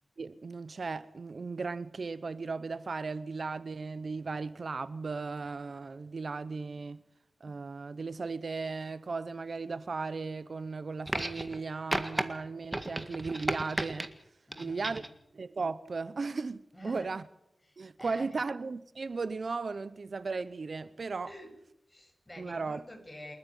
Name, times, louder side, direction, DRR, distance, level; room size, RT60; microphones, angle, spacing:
voice 1, 0.2-7.0 7.4-14.1 14.6-15.0 15.3-17.2 17.8-21.3 22.4-22.8, right 4 dB, 65° right, 0.7 m, -36 dB
sound 1, 11.1-11.6 11.9-12.3 12.7-14.1 14.5-15.1 16.2-16.3, right 1 dB, 25° right, 1.8 m, -34 dB
voice 2, 14.5-15.1 16.7-17.1 17.6-18.4 21.2-21.5 21.9-23.3, left 1 dB, 15° left, 6.4 m, -48 dB
28.0 x 9.6 x 9.8 m
wide cardioid pair, 65°, 0 cm